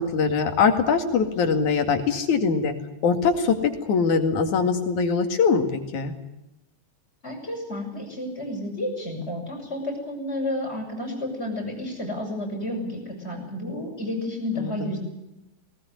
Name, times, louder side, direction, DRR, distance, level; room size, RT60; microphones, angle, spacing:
voice 1, 0.0-2.7 3.0-3.6 3.9-6.1 14.6-14.9, left 5 dB, 85° left, 6 dB, 3.7 m, -22 dB
voice 2, 7.2-15.0, left 1 dB, 20° left, 0 dB, 7.4 m, -31 dB
20.0 x 19.0 x 9.9 m, 0.93 s
omnidirectional pair, 3.3 m